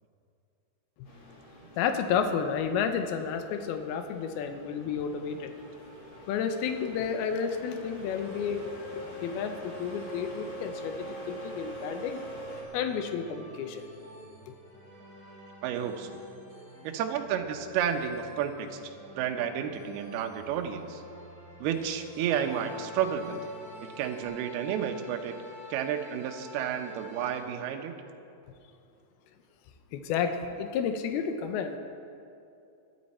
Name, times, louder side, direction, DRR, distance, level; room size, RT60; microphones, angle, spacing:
sound 1, 1.0-12.6, equal, 35° left, 2.2 m, -44 dB
voice 1, 1.8-5.5 6.3-12.2 12.7-13.8 14.5-14.6 29.9-31.8, left 7 dB, 80° left, 7 dB, 2.2 m, -31 dB
sound 2, 8.2-24.2, right 1 dB, 5° left, 3.8 m, -51 dB
voice 2, 15.6-16.2 16.8-18.8 19.2-21.0 21.6-23.4 24.0-25.3 25.7-28.0, right 8 dB, 75° right, 4 dB, 2.5 m, -31 dB
sound 3, 22.1-27.4, left 2 dB, 55° left, 4.2 m, -48 dB
21.0 x 12.0 x 4.3 m, 2.6 s
omnidirectional pair, 5.3 m